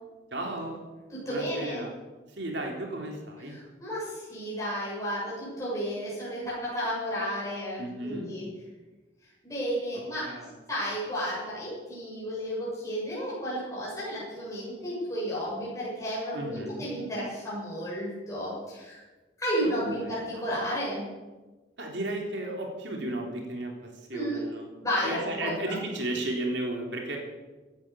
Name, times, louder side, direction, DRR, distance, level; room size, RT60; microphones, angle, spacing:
voice 1, 0.3-0.8 1.3-1.9 2.3-3.5 7.8-8.3 10.2-10.5 16.3-16.9 19.6-19.7 21.8-24.6 25.0-27.2, right 1 dB, 70° right, 1 dB, 3.7 m, -34 dB
voice 2, 1.1-1.8 3.5-8.5 9.2-10.3 10.7-19.0 19.4-21.1 24.1-24.4 24.8-25.7, equal, 15° left, -8 dB, 7.5 m, -32 dB
16.5 x 12.0 x 7.1 m, 1.2 s
head